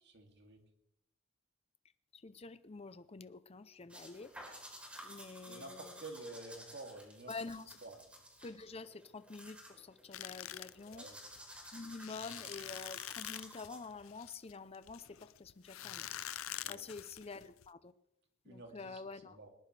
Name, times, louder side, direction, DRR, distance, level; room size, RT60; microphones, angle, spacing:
voice 1, 0.1-0.6 5.5-7.3 7.8-8.0 10.9-11.2 16.6-16.9 18.4-19.5, right 2 dB, 60° right, 3 dB, 2.7 m, -50 dB
voice 2, 2.1-4.6 5.0-6.0 7.3-7.8 8.4-11.1 11.7-16.1 16.7-17.9 18.5-19.4, left 4 dB, 30° left, 13 dB, 0.6 m, -48 dB
sound 1, 3.9-14.1, equal, 5° right, 3.7 m, -54 dB
sound 2, 10.1-17.7, left 12 dB, 85° left, 0.6 m, -46 dB
20.5 x 19.5 x 3.3 m, 0.82 s
head